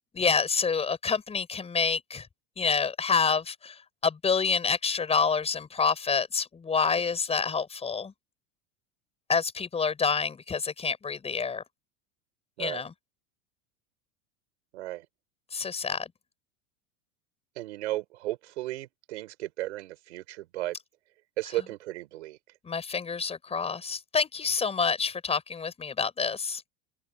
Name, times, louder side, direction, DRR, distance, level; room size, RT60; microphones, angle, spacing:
voice 1, 0.1-2.3 2.6-8.1 9.3-11.6 12.6-12.9 15.5-16.1 22.6-26.6, left 5 dB, 20° left, 6.2 m, -28 dB
voice 2, 14.7-15.1 17.6-20.8 21.4-22.4, right 16 dB, 90° right, 5.3 m, -35 dB
supercardioid pair, 130°, 33 cm